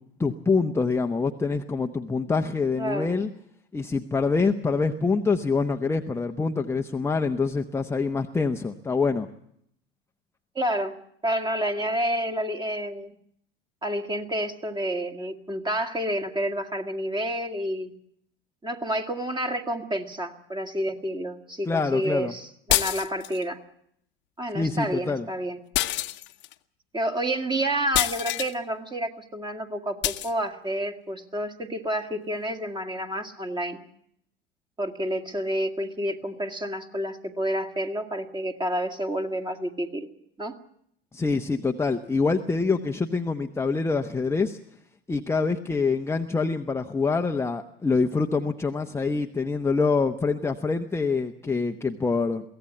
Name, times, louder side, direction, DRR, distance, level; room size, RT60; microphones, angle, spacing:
voice 1, 0.2-3.3 3.7-9.3 21.7-22.3 24.5-25.3 41.1-44.6 45.1-52.4, left 4 dB, 10° left, 4 dB, 0.9 m, -25 dB
voice 2, 2.8-3.1 10.6-11.0 11.2-13.1 13.8-17.9 18.6-23.6 24.4-25.6 26.9-33.8 34.8-40.1 40.4-40.5, right 1 dB, 15° right, 6 dB, 2.0 m, -29 dB
sound 1, 22.7-23.4 25.7-26.5 27.9-28.5 30.0-30.3, left 16 dB, 40° left, 1.0 m, -26 dB
23.0 x 16.5 x 8.1 m, 0.71 s
figure-of-eight pair, 75°, 29 cm